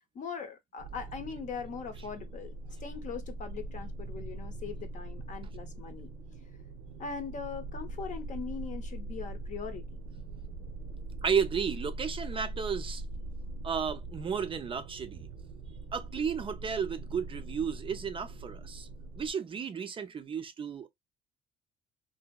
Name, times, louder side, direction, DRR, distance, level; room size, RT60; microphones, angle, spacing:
voice 1, 0.1-2.5 2.8-6.1 7.0-10.0, left 6 dB, 45° left, 0.7 m, -40 dB
sound 1, 0.8-19.3, right 2 dB, 75° right, 0.6 m, -42 dB
voice 2, 11.2-13.0 13.6-15.3 15.9-18.9 19.2-20.9, right 6 dB, 30° right, 0.4 m, -33 dB
2.8 x 2.7 x 2.2 m
cardioid pair, 110°, 17 cm